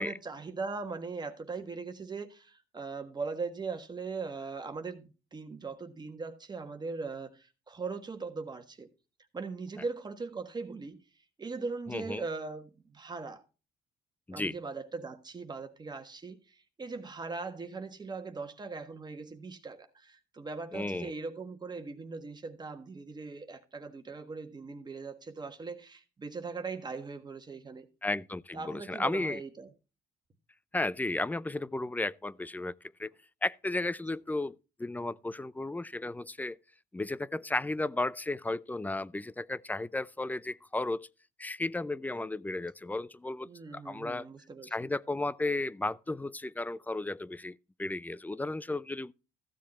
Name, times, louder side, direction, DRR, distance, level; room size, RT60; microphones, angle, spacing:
voice 1, 0.0-8.9 9.3-11.0 11.4-13.4 14.3-27.9 28.5-29.7 43.4-44.9, right 4 dB, 25° right, 1.5 m, -40 dB
voice 2, 11.9-12.2 14.3-14.6 20.7-21.1 28.0-29.4 30.7-32.7 33.0-33.1 33.4-36.6 36.9-41.1 41.4-44.3 44.7-49.1, left 2 dB, 10° left, 0.4 m, -34 dB
15.0 x 7.4 x 4.3 m
cardioid pair, 110°, 17 cm